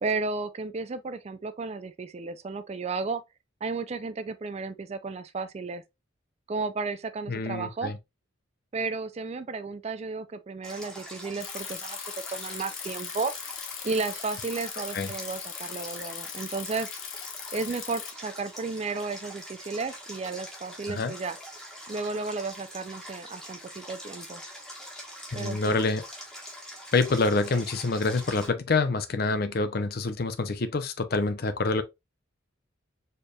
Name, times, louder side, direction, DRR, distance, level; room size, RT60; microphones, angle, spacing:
voice 1, 0.0-3.2 3.6-5.8 6.5-7.9 8.7-12.0 12.3-13.3 13.8-16.9 17.5-21.4 21.9-24.4 25.3-25.8, right 4 dB, 30° right, 0.3 m, -33 dB
voice 2, 7.3-8.0 14.9-15.1 20.9-21.1 25.3-26.0 26.9-31.8, left 3 dB, 50° left, 0.5 m, -26 dB
Stream, 10.6-28.5, equal, 5° left, 1.0 m, -44 dB
Bicycle, 11.4-18.1, left 9 dB, 75° left, 0.8 m, -39 dB
4.4 x 3.3 x 2.2 m
head